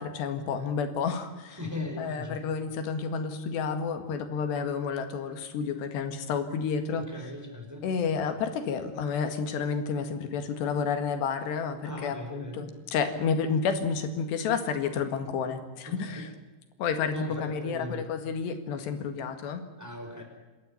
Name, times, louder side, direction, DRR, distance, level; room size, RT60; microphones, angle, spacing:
voice 1, 0.0-1.6 2.0-7.1 7.8-16.3 16.8-19.6, left 6 dB, 85° left, 8 dB, 4.0 m, -30 dB
voice 2, 1.5-2.4 6.9-7.8 11.8-12.7 15.8-16.3 17.1-18.0 19.8-20.2, left 2 dB, 5° right, 2 dB, 4.6 m, -38 dB
27.5 x 13.0 x 9.7 m, 1.2 s
omnidirectional pair, 4.8 m